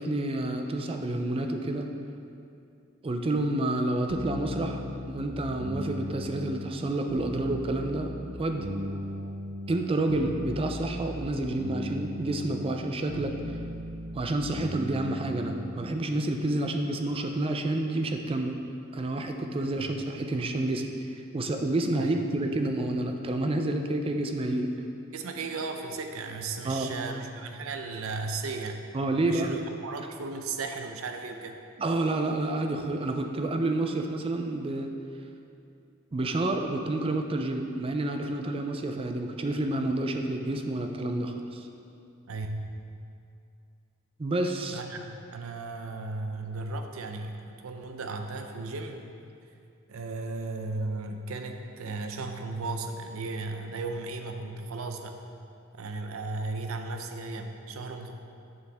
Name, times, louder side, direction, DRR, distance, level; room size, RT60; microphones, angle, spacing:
voice 1, 0.0-1.9 3.0-4.8 5.1-8.7 9.7-13.6 14.1-18.6 18.9-24.7 26.6-26.9 28.9-29.5 31.8-34.9 36.1-41.7 44.2-44.8, right 2 dB, 25° right, 4 dB, 0.4 m, -29 dB
sound 1, 4.1-16.0, equal, 60° right, 1.0 m, -37 dB
voice 2, 25.1-28.8 29.2-29.6 29.8-31.6 42.3-42.7 44.7-49.0 49.9-55.2 55.7-58.1, right 3 dB, 85° right, 5 dB, 0.6 m, -35 dB
7.0 x 6.4 x 3.4 m, 2.5 s
head